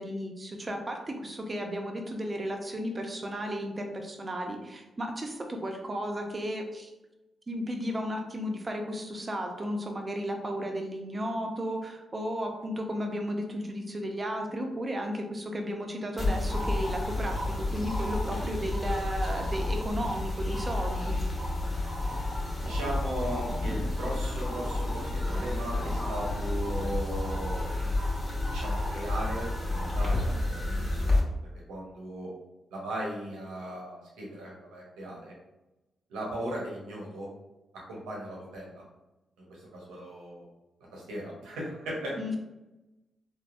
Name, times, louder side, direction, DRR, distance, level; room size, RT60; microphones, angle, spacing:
voice 1, 0.0-6.9 7.5-21.2 42.2-42.4, equal, 35° right, 3 dB, 0.6 m, -34 dB
sound 1, 16.2-31.2, left 2 dB, 35° left, 1.1 m, -30 dB
voice 2, 22.6-28.0 28.5-31.2 31.7-32.3 32.7-35.3 36.1-37.3 37.9-38.8 39.5-40.5 40.9-42.2, right 1 dB, 90° right, -4 dB, 0.9 m, -37 dB
3.3 x 2.1 x 2.5 m, 1.0 s
supercardioid pair, 50°, 0 cm